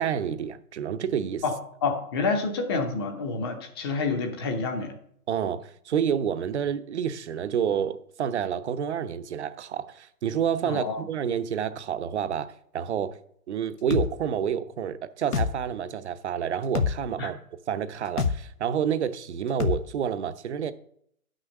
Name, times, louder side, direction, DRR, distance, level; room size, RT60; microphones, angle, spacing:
voice 1, 0.0-1.4 5.3-13.2 13.5-17.4 17.7-20.7, right 8 dB, 50° right, 0.8 m, -29 dB
voice 2, 1.8-5.0 10.6-11.0 17.2-17.3, left 4 dB, 15° left, 0.8 m, -28 dB
sound 1, 13.9-14.1 15.3-15.5 16.7-16.9 18.2-18.4 19.6-19.8, left 6 dB, 85° left, 1.4 m, -24 dB
10.5 x 6.3 x 6.4 m
hypercardioid pair, 160°, 45 cm